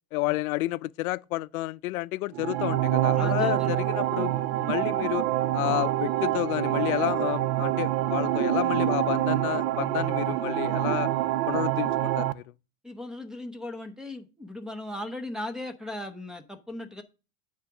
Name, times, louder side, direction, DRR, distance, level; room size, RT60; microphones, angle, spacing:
voice 1, 0.1-5.3 5.5-11.1 11.5-12.4, left 19 dB, 80° left, 0.5 m, -30 dB
sound 1, 2.3-12.3, right 14 dB, 50° right, 0.5 m, -26 dB
voice 2, 3.2-3.8 12.8-17.0, left 1 dB, ahead, 0.7 m, -37 dB
8.8 x 3.7 x 5.8 m
supercardioid pair, 145°, 42 cm